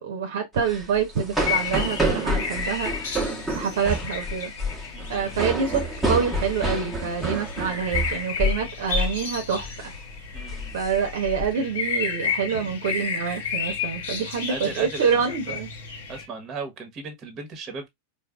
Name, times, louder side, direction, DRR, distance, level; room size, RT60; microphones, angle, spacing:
voice 1, 0.0-3.2 3.5-4.5 5.1-9.9 10.7-15.7, right 6 dB, 55° right, 1.0 m, -26 dB
sound 1, 0.6-8.7 8.9-9.2 9.6-9.9 10.3-11.5, equal, 5° right, 1.2 m, -28 dB
sound 2, 1.4-16.3, left 6 dB, 55° left, 1.2 m, -32 dB
voice 2, 4.9-5.4 10.3-10.8 12.5-12.7 14.5-15.5 16.1-17.9, right 4 dB, 30° right, 1.2 m, -36 dB
4.5 x 2.3 x 2.4 m
figure-of-eight pair, 90°, 0 cm